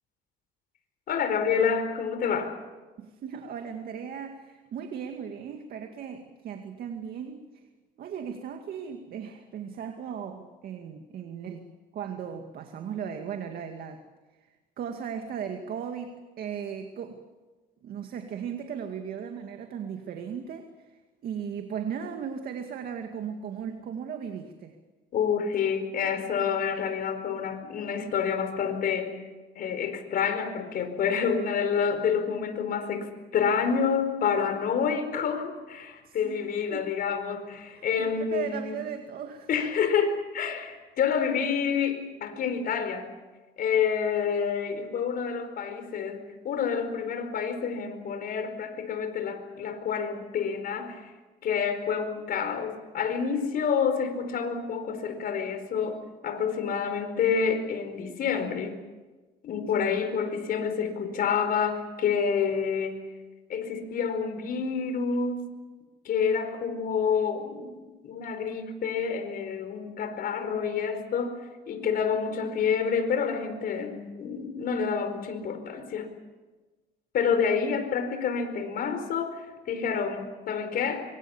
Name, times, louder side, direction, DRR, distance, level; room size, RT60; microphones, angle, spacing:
voice 1, 1.1-2.5 25.1-29.2 29.5-38.7 39.5-43.1 43.6-51.1 51.4-58.8 59.4-63.0 63.5-65.5 66.0-67.8 68.0-76.1 77.1-81.0, left 6 dB, 60° left, 8 dB, 4.7 m, -28 dB
voice 2, 3.0-7.7 8.0-11.7 11.9-14.0 14.4-17.2 17.8-24.8 36.0-36.9 37.7-39.5 59.7-60.1, right 7 dB, 60° right, 5 dB, 2.3 m, -37 dB
25.0 x 25.0 x 7.3 m, 1.2 s
cardioid pair, 110°, 17 cm